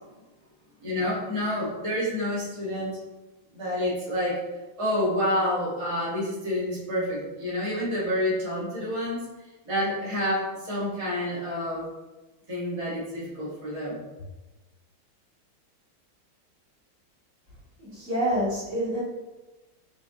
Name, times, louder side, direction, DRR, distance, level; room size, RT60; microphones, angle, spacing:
voice 1, 0.8-2.9 3.5-4.4 4.8-9.2 9.6-11.9 12.5-14.0, left 1 dB, 25° right, -8 dB, 0.8 m, -28 dB
voice 2, 17.8-19.0, equal, 40° right, -8 dB, 1.8 m, -27 dB
4.4 x 3.8 x 2.7 m, 1.1 s
omnidirectional pair, 2.2 m